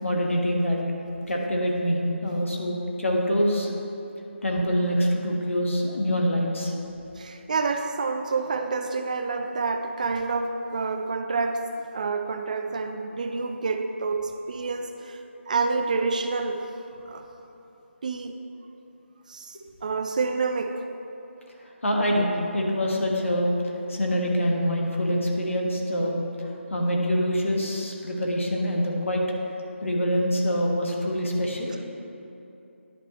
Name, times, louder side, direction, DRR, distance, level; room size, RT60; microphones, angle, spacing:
voice 1, 0.0-0.8 1.3-3.7 4.4-6.7 21.8-29.2 29.8-31.7, equal, 75° left, -1 dB, 1.5 m, -25 dB
voice 2, 7.2-16.7 17.1-17.3 18.0-18.4 19.3-20.8, right 4 dB, 35° right, 6 dB, 0.4 m, -28 dB
11.0 x 5.3 x 3.1 m, 2.9 s
figure-of-eight pair, 160°, 7 cm